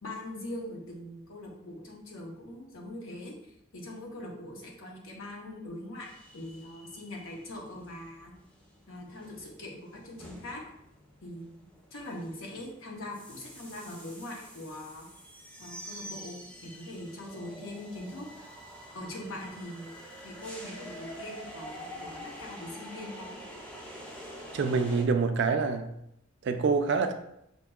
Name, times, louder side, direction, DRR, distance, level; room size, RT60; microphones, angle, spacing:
voice 1, 0.0-8.3 8.9-10.6 11.2-11.5 11.9-15.1 15.6-16.4 16.6-18.5 18.9-20.0 20.2-23.4, left 1 dB, 90° left, -1 dB, 0.9 m, -42 dB
sound 1, 6.0-25.0, equal, 5° left, 0.5 m, -47 dB
voice 2, 24.5-25.9 26.4-27.1, right 4 dB, 60° right, 8 dB, 0.3 m, -26 dB
4.5 x 2.6 x 2.3 m, 0.79 s
head